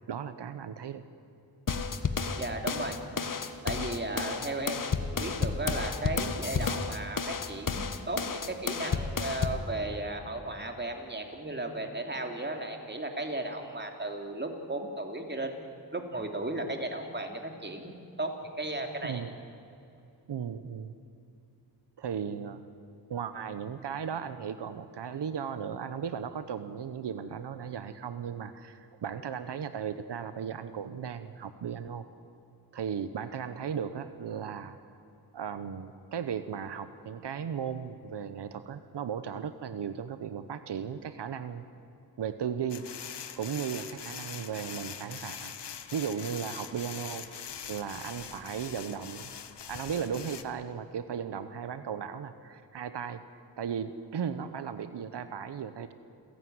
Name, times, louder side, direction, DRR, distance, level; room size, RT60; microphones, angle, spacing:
voice 1, 0.1-1.0 19.0-19.3 20.3-20.9 22.0-22.6 23.1-32.1 32.7-34.8 35.3-41.6 42.2-42.8 43.4-47.2 47.7-49.3 49.7-55.9, right 7 dB, 85° right, 11 dB, 1.0 m, -36 dB
sound 1, 1.7-9.7, left 5 dB, 50° left, 1.4 m, -31 dB
voice 2, 2.4-3.0 3.6-15.7 15.9-19.2, right 2 dB, 25° right, 4 dB, 3.2 m, -35 dB
sound 2, 42.7-50.4, left 8 dB, 85° left, 1.3 m, -43 dB
28.0 x 16.0 x 9.5 m, 2.7 s
wide cardioid pair, 80°, 40 cm